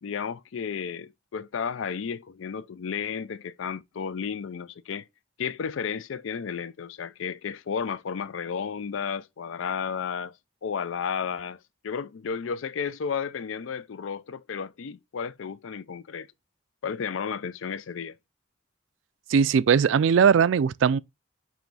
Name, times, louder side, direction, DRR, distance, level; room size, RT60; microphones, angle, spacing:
voice 1, 0.0-5.0 5.4-10.3 10.6-16.3 16.8-18.2, left 6 dB, 75° left, 0.4 m, -33 dB
voice 2, 19.3-21.0, right 7 dB, 70° right, 0.3 m, -19 dB
9.0 x 3.1 x 3.9 m
head